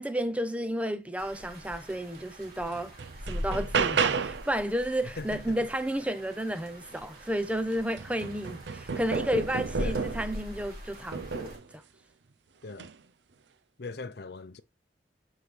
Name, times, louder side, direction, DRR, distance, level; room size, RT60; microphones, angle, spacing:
voice 1, 0.0-2.9 3.2-11.8, equal, 10° right, 0.8 m, -32 dB
sound 1, 1.2-11.6, equal, 55° right, 3.1 m, -42 dB
sound 2, 2.1-2.2 2.7-4.5 6.9-7.0 7.4-10.4 11.1-11.7 12.7-12.9, right 5 dB, 85° right, 0.6 m, -31 dB
voice 2, 5.2-5.5 9.8-10.1 12.6-12.9 13.8-14.6, left 3 dB, 65° left, 0.7 m, -39 dB
8.3 x 5.6 x 3.2 m
head